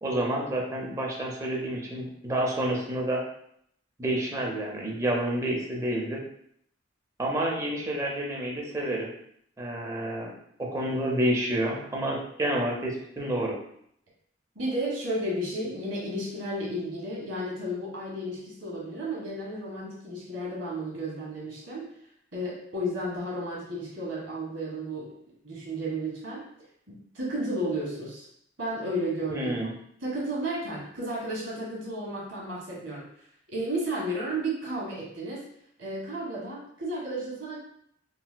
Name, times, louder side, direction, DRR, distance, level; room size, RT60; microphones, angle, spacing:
voice 1, 0.0-3.2 4.0-6.2 7.2-9.1 9.6-10.3 10.6-13.6 29.3-29.7, right 1 dB, 15° right, -2 dB, 0.5 m, -29 dB
voice 2, 14.5-21.9 22.3-25.1 25.4-26.4 26.9-28.2 28.6-29.6 30.0-33.1 33.5-35.5 35.8-37.6, right 1 dB, 75° right, -5 dB, 1.4 m, -33 dB
4.0 x 2.1 x 2.2 m, 0.70 s
head